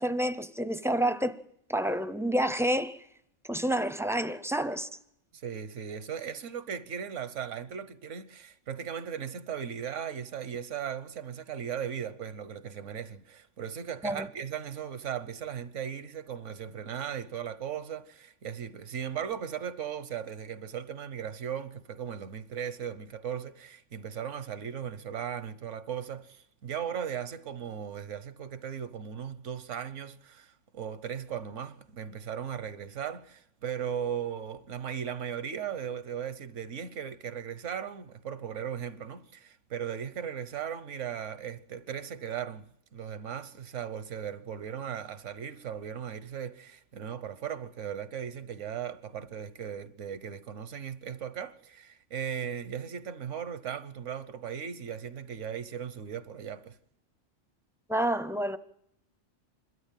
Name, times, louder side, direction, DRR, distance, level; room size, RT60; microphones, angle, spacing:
voice 1, 0.0-1.4 1.7-3.0 3.5-4.9 14.0-14.3 57.9-58.6, right 1 dB, 5° right, 0.3 m, -28 dB
voice 2, 5.3-42.7 42.9-56.8, right 8 dB, 85° right, 1.3 m, -37 dB
27.5 x 12.5 x 7.5 m
omnidirectional pair, 1.2 m